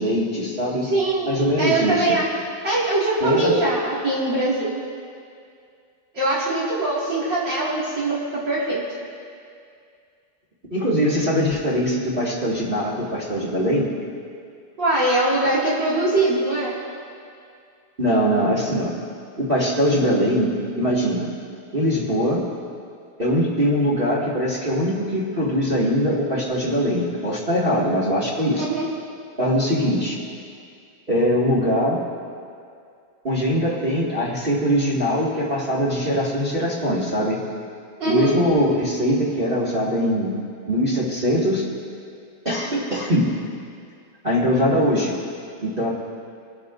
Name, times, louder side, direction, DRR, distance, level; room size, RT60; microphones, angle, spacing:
voice 1, 0.0-0.9 1.3-2.2 3.2-3.6 10.7-13.9 18.0-18.9 19.4-21.3 21.7-22.4 23.2-28.7 29.4-30.2 31.1-32.0 33.2-37.4 38.0-40.3 40.7-41.6 42.5-43.3 44.2-45.1 45.6-45.9, equal, 25° right, -6 dB, 1.9 m, -22 dB
voice 2, 0.8-1.3 1.6-2.3 2.6-4.7 6.1-8.2 8.5-8.8 14.8-16.8 28.6-28.8 38.0-38.3, right 2 dB, 60° right, -7 dB, 2.8 m, -22 dB
25.0 x 12.0 x 2.5 m, 2.3 s
omnidirectional pair, 2.3 m